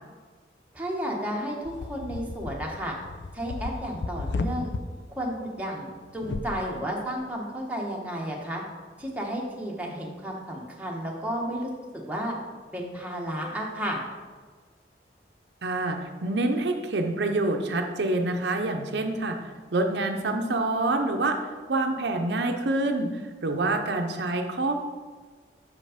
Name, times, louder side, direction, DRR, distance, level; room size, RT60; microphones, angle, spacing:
voice 1, 0.7-3.0 3.3-4.7 5.2-5.9 6.1-8.6 9.0-12.3 12.7-14.0, equal, 10° right, -2 dB, 1.1 m, -32 dB
sound 1, 1.7-4.8 6.2-6.6, left 3 dB, 80° left, 0.5 m, -34 dB
voice 2, 15.6-19.4 19.7-21.4 21.7-24.8, right 2 dB, 75° right, 4 dB, 0.6 m, -26 dB
6.4 x 5.3 x 5.0 m, 1.5 s
head